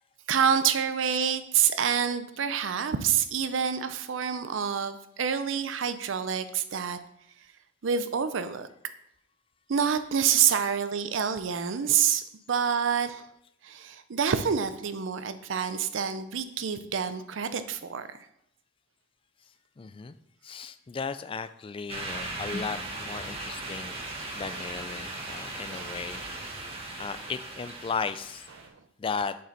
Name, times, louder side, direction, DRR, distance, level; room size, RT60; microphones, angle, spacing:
voice 1, 0.3-7.0 7.8-8.7 9.7-13.2 13.6-18.2 23.6-23.8 24.5-24.7 25.7-26.0 28.6-28.7, right 7 dB, 75° right, 11 dB, 0.5 m, -27 dB
voice 2, 19.8-20.2 20.4-24.0 24.3-26.2 27.0-28.4 29.0-29.4, left 5 dB, 25° left, 12 dB, 0.3 m, -35 dB
sound 1, 21.9-28.7, right 2 dB, 30° right, 1.2 m, -38 dB
7.5 x 5.5 x 4.0 m, 0.76 s
head